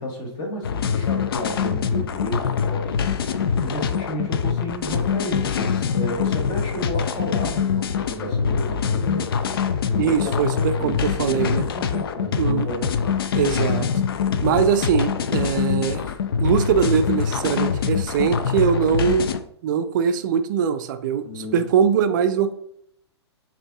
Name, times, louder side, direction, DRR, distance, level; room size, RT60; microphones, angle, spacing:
voice 1, 0.0-9.3 9.6-11.0 11.7-13.3 21.2-21.6, equal, 30° left, 1 dB, 1.0 m, -32 dB
sound 1, 0.6-19.4, left 7 dB, 55° left, 0.4 m, -24 dB
voice 2, 10.0-11.7 12.4-12.7 13.3-13.9 14.4-16.0 16.4-19.3 19.6-22.5, right 7 dB, 45° right, 9 dB, 0.4 m, -22 dB
5.2 x 2.7 x 3.5 m, 0.70 s
figure-of-eight pair, 110°, 15 cm